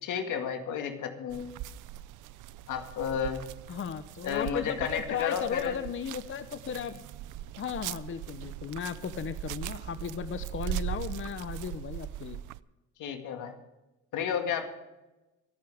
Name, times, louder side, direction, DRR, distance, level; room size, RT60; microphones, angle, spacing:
voice 1, 0.0-1.5 2.7-3.4 4.2-5.8 13.0-13.6 14.1-14.7, left 7 dB, 85° left, 5 dB, 2.1 m, -32 dB
sound 1, 1.3-12.6, right 13 dB, 85° right, 0.5 m, -40 dB
voice 2, 3.7-7.0 7.6-12.4, left 7 dB, 40° left, 12 dB, 0.8 m, -36 dB
24.0 x 10.0 x 3.6 m, 1.1 s
cardioid pair, 90°, 30 cm